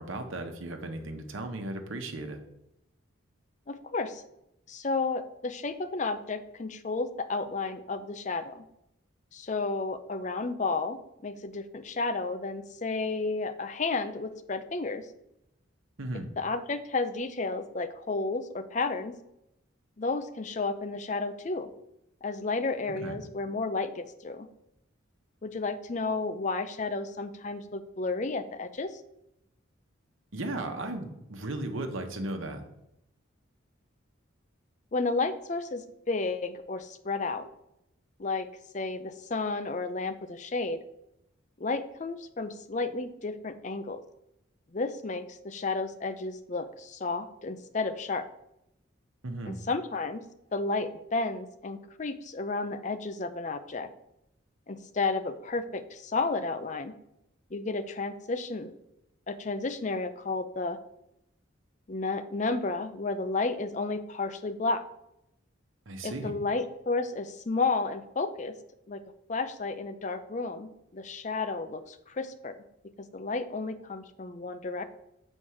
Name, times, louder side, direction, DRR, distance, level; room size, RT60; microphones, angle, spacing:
voice 1, 0.0-2.4 16.0-16.3 22.9-23.2 30.3-32.6 49.2-49.6 65.9-66.3, right 2 dB, 75° right, 5 dB, 1.0 m, -36 dB
voice 2, 3.7-4.2 4.7-8.6 9.3-15.0 16.1-19.2 20.0-21.7 22.2-24.5 25.4-29.0 34.9-37.5 38.2-38.5 38.7-40.8 41.6-44.0 44.7-48.2 49.5-50.2 50.5-53.9 54.7-56.9 57.5-58.7 59.3-60.8 61.9-64.8 66.0-68.6 68.9-69.0 69.3-72.6 73.0-74.8, left 3 dB, 35° left, 11 dB, 0.5 m, -32 dB
6.3 x 4.5 x 5.7 m, 0.83 s
head